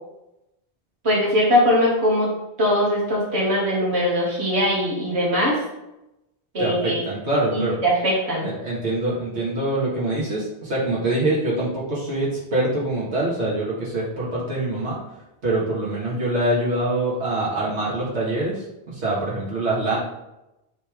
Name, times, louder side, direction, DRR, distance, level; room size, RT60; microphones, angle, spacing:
voice 1, 1.0-2.3 2.6-5.6 6.5-7.0 7.5-8.5, equal, 75° right, -5 dB, 2.1 m, -21 dB
voice 2, 6.6-7.8 8.4-15.0 15.4-20.0, right 1 dB, 90° right, -7 dB, 2.0 m, -24 dB
9.1 x 3.3 x 3.5 m, 0.91 s
omnidirectional pair, 1.1 m